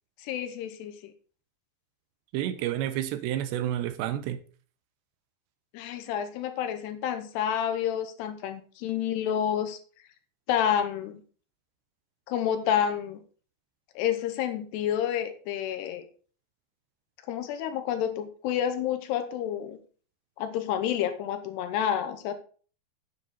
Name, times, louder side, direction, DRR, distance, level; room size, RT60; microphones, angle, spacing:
voice 1, 0.2-1.1 5.7-9.8 10.5-11.2 12.3-13.2 14.0-16.1 17.3-19.8 20.4-22.3, left 9 dB, 75° left, 2.9 m, -29 dB
voice 2, 2.3-4.4, right 12 dB, 85° right, 3.0 m, -30 dB
9.4 x 7.8 x 4.1 m
omnidirectional pair, 5.1 m